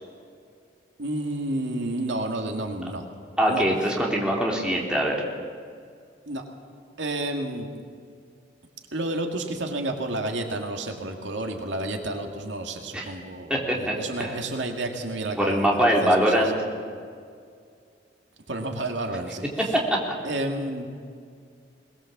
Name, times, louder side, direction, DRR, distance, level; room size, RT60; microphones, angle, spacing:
voice 1, 1.0-3.0 3.4-3.6 6.3-6.4 7.0-7.7 8.9-16.4 18.5-19.4 20.2-20.9, right 2 dB, 80° right, 3 dB, 2.3 m, -30 dB
voice 2, 3.4-5.2 12.9-13.1 13.5-14.4 15.4-16.5 19.6-20.0, equal, 5° right, -2 dB, 3.1 m, -23 dB
21.5 x 20.5 x 7.4 m, 2.2 s
head